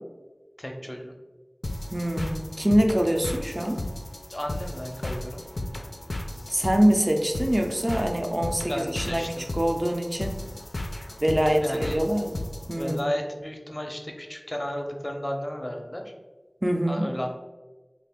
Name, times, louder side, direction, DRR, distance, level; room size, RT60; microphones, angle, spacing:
voice 1, 0.6-1.1 4.3-5.4 8.7-9.5 11.5-12.0 12.8-16.1 16.9-17.3, equal, 25° left, 2 dB, 0.5 m, -33 dB
sound 1, 1.6-13.0, left 1 dB, 75° left, 0.3 m, -35 dB
voice 2, 1.9-3.8 6.5-9.3 9.5-10.4 11.2-13.0 16.6-17.1, equal, 30° right, 3 dB, 0.4 m, -24 dB
3.3 x 2.4 x 3.5 m, 1.2 s
wide cardioid pair, 45°, 0 cm